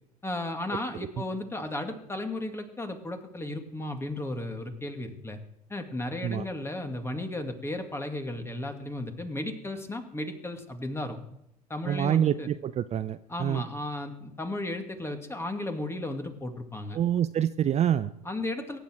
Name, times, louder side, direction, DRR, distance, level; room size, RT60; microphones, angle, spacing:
voice 1, 0.2-5.4 5.7-11.2 11.7-12.5 13.3-17.0 18.2-18.8, left 1 dB, 10° left, 6 dB, 2.4 m, -34 dB
voice 2, 11.8-13.6 16.9-18.1, right 10 dB, 35° right, 12 dB, 0.6 m, -26 dB
23.0 x 10.0 x 4.6 m, 0.79 s
figure-of-eight pair, 70°, 20 cm